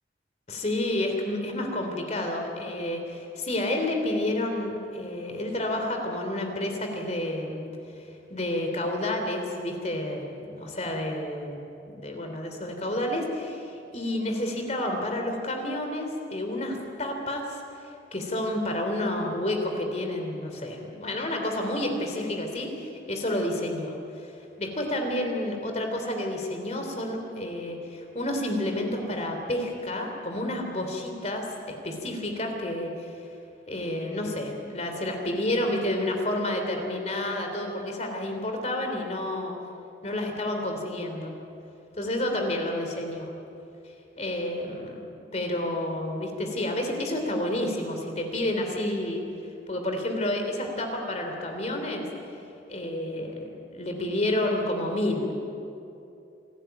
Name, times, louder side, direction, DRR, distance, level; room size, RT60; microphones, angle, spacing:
voice 1, 0.5-7.7 8.3-23.9 24.2-24.3 24.6-33.1 33.7-39.5 40.0-41.3 42.0-43.3 44.2-45.1 45.3-49.2 49.7-52.1 52.7-55.3, left 1 dB, 40° left, 3 dB, 3.4 m, -30 dB
27.0 x 14.0 x 9.3 m, 2.7 s
head